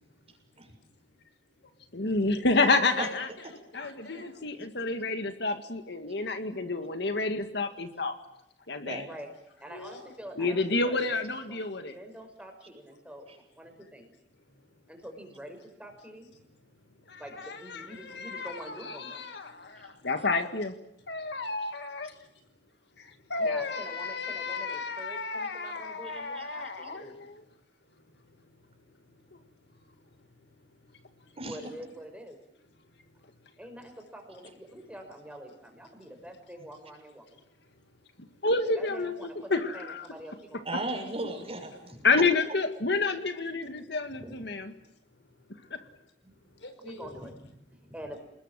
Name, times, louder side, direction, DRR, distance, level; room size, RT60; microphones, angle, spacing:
voice 1, 0.0-2.1 2.5-4.4 9.7-10.0 11.0-11.1 13.6-13.9 14.3-15.1 16.3-17.2 19.4-20.1 21.0-21.7 22.0-23.7 27.1-31.7 32.6-33.6 36.0-36.1 36.7-36.8 37.3-38.5 44.1-44.2 44.8-47.1 47.8-47.9, left 2 dB, 85° left, 8 dB, 5.2 m, -52 dB
voice 2, 1.9-3.3 3.7-8.2 8.7-9.0 10.4-11.9 17.1-20.7 21.1-22.1 23.0-27.4 38.4-40.1 42.0-44.7 45.7-45.8, left 3 dB, 65° left, 7 dB, 2.0 m, -30 dB
voice 3, 9.6-14.1 14.9-16.3 17.2-19.2 23.4-27.2 31.5-32.4 33.6-37.3 38.7-40.7 41.9-42.1 44.1-44.5 46.2-46.3 46.8-48.2, equal, 5° right, 4 dB, 5.7 m, -46 dB
voice 4, 40.6-42.0, right 2 dB, 35° right, 4 dB, 6.4 m, -35 dB
28.0 x 20.5 x 7.7 m, 0.84 s
head